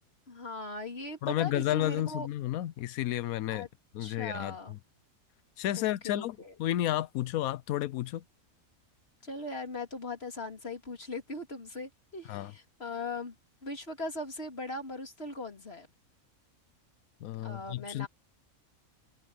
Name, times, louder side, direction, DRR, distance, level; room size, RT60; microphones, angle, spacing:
voice 1, 0.3-2.3 3.5-3.7 4.0-4.8 5.8-6.5 9.2-13.3 13.6-15.9 17.4-18.1, left 2 dB, 45° left, 3.4 m, -39 dB
voice 2, 1.2-3.7 3.9-4.8 5.6-8.2 12.3-12.5 17.2-18.1, left 13 dB, 90° left, 1.1 m, -32 dB
omnidirectional pair, 1.4 m